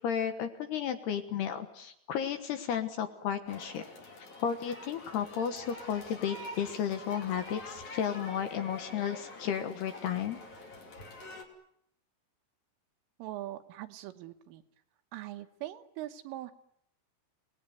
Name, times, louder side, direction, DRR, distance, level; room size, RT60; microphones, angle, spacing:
voice 1, 0.0-3.8 4.4-10.4, left 8 dB, 65° left, 7 dB, 2.9 m, -33 dB
sound 1, 3.5-11.4, left 2 dB, 40° left, 3.8 m, -46 dB
voice 2, 13.2-14.6 15.1-16.5, right 14 dB, 80° right, 8 dB, 3.7 m, -41 dB
28.5 x 19.0 x 9.4 m, 0.74 s
omnidirectional pair, 5.8 m